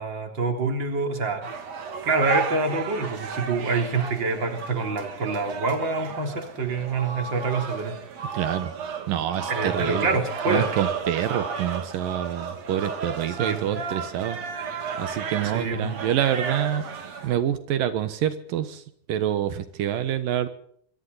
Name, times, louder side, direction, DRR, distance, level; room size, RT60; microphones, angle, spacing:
voice 1, 0.0-1.5 2.0-8.0 8.2-8.3 9.5-10.8 13.3-13.8 15.4-16.0, right 3 dB, 35° right, 4 dB, 4.1 m, -26 dB
sound 1, 1.4-17.4, right 6 dB, 55° right, 3.3 m, -33 dB
voice 2, 8.3-8.7 9.1-10.1 10.5-14.4 15.0-16.8 17.2-18.8 19.1-20.5, right 10 dB, 80° right, 10 dB, 3.0 m, -26 dB
25.5 x 25.5 x 4.1 m, 0.63 s
omnidirectional pair, 3.9 m